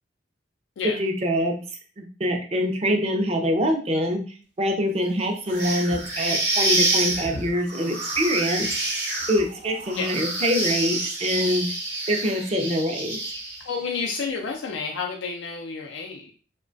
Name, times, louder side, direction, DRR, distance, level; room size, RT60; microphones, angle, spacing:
voice 1, 0.8-1.6 2.0-4.2 4.6-8.7 9.3-11.7 12.1-13.2, equal, 35° right, 3 dB, 0.4 m, -24 dB
sound 1, 5.5-13.8, right 2 dB, 60° right, 0.8 m, -27 dB
voice 2, 13.6-16.3, left 5 dB, 90° left, 1 dB, 0.4 m, -30 dB
3.0 x 2.1 x 2.5 m, 0.39 s
head